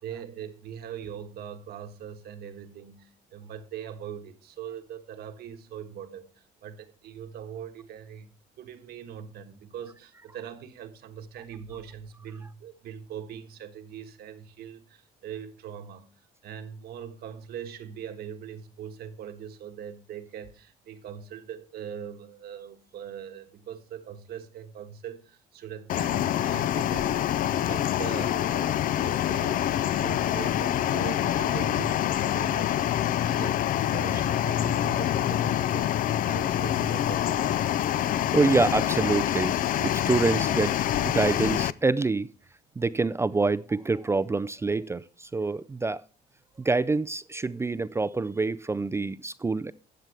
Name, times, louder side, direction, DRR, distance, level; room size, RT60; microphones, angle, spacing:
voice 1, 0.0-8.3 8.6-33.6 33.9-37.6, right 8 dB, 70° right, 1.4 m, -41 dB
sound 1, 25.9-41.7, left 11 dB, 55° left, 0.4 m, -26 dB
voice 2, 38.3-39.5 39.8-40.8 41.0-42.3 42.8-46.0 46.6-49.7, right 3 dB, 15° right, 0.3 m, -26 dB
13.5 x 7.7 x 3.4 m
cardioid pair, 110°, 17 cm